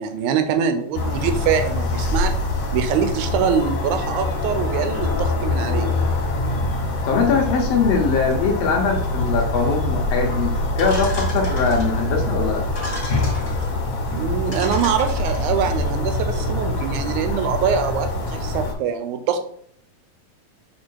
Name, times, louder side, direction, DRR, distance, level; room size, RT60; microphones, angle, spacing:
voice 1, 0.0-2.3 2.7-5.9 14.1-19.4, right 7 dB, 75° right, 8 dB, 2.0 m, -23 dB
sound 1, 0.9-18.7, left 2 dB, 50° left, 1.6 m, -24 dB
voice 2, 7.1-12.6, left 5 dB, 90° left, 1 dB, 1.4 m, -21 dB
sound 2, 10.8-12.1 12.6-13.7 14.2-14.3 14.5-15.7, left 1 dB, 20° left, 1.6 m, -34 dB
6.7 x 3.6 x 4.5 m, 0.63 s
omnidirectional pair, 3.9 m